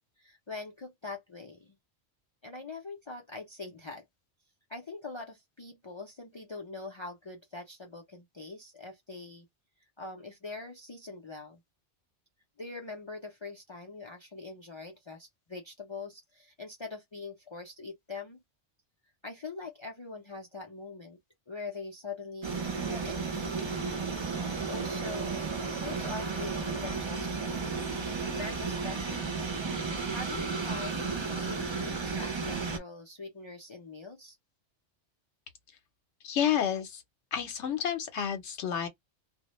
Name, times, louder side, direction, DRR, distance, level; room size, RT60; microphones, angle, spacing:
voice 1, 0.0-1.7 2.4-4.0 4.7-9.5 10.0-11.6 12.6-18.4 19.2-21.2 21.5-22.6 22.9-23.2 24.7-27.6 28.3-29.4 30.1-34.4, left 3 dB, 50° left, 0.3 m, -43 dB
sound 1, 22.4-32.8, right 4 dB, 40° right, 0.4 m, -33 dB
voice 2, 36.2-37.0 37.3-38.9, left 9 dB, 80° left, 0.9 m, -30 dB
2.1 x 2.1 x 2.9 m
omnidirectional pair, 1.2 m